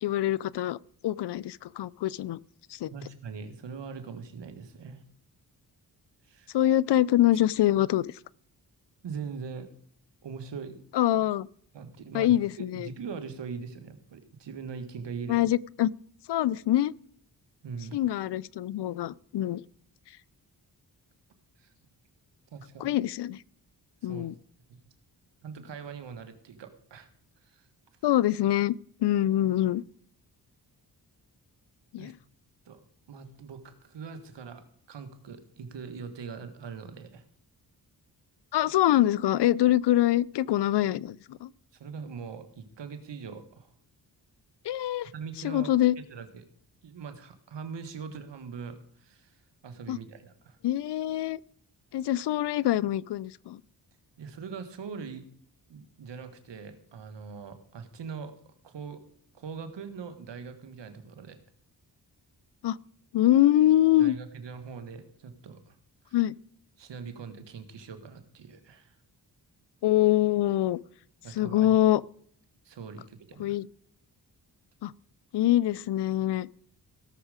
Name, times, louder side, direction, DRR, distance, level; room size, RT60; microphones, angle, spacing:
voice 1, 0.0-0.8 1.0-2.4 2.7-2.9 6.5-8.1 10.9-11.5 12.1-12.9 15.3-15.9 16.3-16.9 17.9-19.6 22.8-23.4 24.0-24.3 28.0-28.7 29.0-29.8 31.9-32.2 38.5-41.5 44.6-45.1 45.4-46.0 49.9-50.0 50.6-51.4 51.9-53.6 62.6-62.8 63.1-64.2 66.1-66.3 69.8-70.8 71.3-72.0 73.4-73.7 74.8-74.9 75.3-76.5, left 13 dB, 70° left, 0.5 m, -24 dB
voice 2, 2.9-5.0 6.2-6.6 9.0-9.7 10.2-10.8 11.7-15.4 17.6-18.0 21.6-21.7 22.5-22.9 24.1-24.3 24.7-24.8 25.4-27.1 27.4-27.7 32.0-32.1 32.6-32.8 33.1-37.2 41.8-43.7 45.1-46.4 46.8-50.6 54.2-55.2 55.7-58.3 58.6-59.0 59.3-61.4 64.0-65.7 66.0-66.2 66.8-68.9 71.2-71.8 72.6-73.5, right 5 dB, 80° right, 1.7 m, -42 dB
17.5 x 6.5 x 5.0 m
cardioid pair, 60°, 43 cm